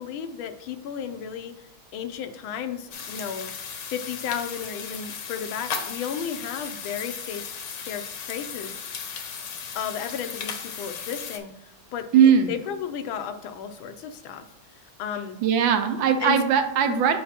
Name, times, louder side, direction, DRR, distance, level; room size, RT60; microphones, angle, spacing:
voice 1, 0.0-3.5 3.9-8.8 9.7-14.5 14.7-15.4 16.2-16.4 16.9-17.0, left 8 dB, 85° left, 8 dB, 1.4 m, -34 dB
sound 1, 2.9-11.4, left 6 dB, 70° left, 1.3 m, -36 dB
voice 2, 12.1-12.5 15.4-17.2, right 7 dB, 80° right, 7 dB, 1.3 m, -19 dB
8.3 x 4.6 x 2.8 m, 0.78 s
omnidirectional pair, 2.2 m